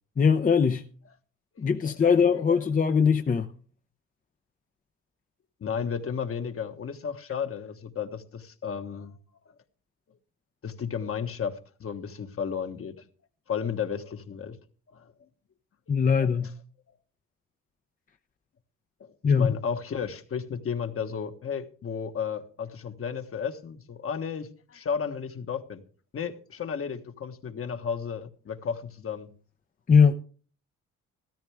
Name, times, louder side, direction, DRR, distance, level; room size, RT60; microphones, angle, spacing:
voice 1, 0.2-0.8 1.6-3.5 15.9-16.5 19.2-19.5 29.9-30.1, left 6 dB, 25° left, 0.7 m, -21 dB
voice 2, 5.6-9.2 10.6-12.9 13.5-14.6 14.9-15.1 19.0-25.8 26.1-29.3, left 7 dB, 50° left, 1.4 m, -33 dB
13.5 x 13.5 x 3.5 m
cardioid pair, 90°, 30 cm